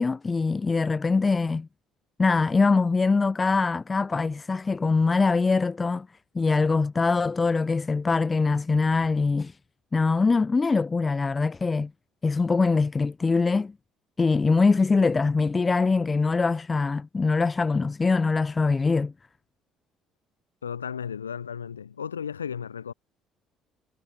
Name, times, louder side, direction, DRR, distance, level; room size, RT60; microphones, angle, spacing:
voice 1, 0.0-1.7 2.2-6.1 6.4-9.6 9.9-11.9 12.2-13.7 14.2-19.1, left 4 dB, 25° left, 1.9 m, -23 dB
voice 2, 20.6-22.9, left 7 dB, 85° left, 2.2 m, -34 dB
figure-of-eight pair, 50°, 0 cm